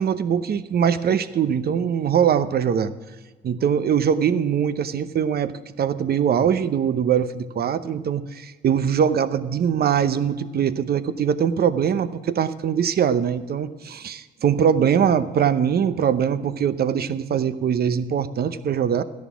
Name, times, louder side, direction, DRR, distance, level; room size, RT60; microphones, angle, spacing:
voice 1, 0.0-2.9 3.4-5.5 5.8-19.0, right 8 dB, 50° right, 13 dB, 0.8 m, -22 dB
14.0 x 10.5 x 6.1 m, 1.3 s
cardioid pair, 90°, 20 cm